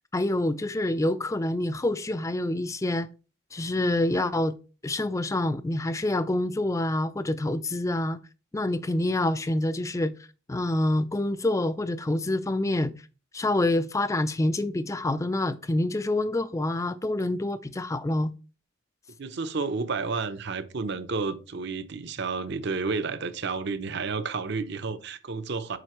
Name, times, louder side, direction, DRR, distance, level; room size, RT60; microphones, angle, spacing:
voice 1, 0.1-3.1 3.5-4.5 4.8-8.2 8.5-10.1 10.5-12.9 13.3-18.3, left 1 dB, 15° left, 0.3 m, -27 dB
voice 2, 19.2-25.8, right 4 dB, 55° right, 0.6 m, -31 dB
7.8 x 4.9 x 3.0 m
head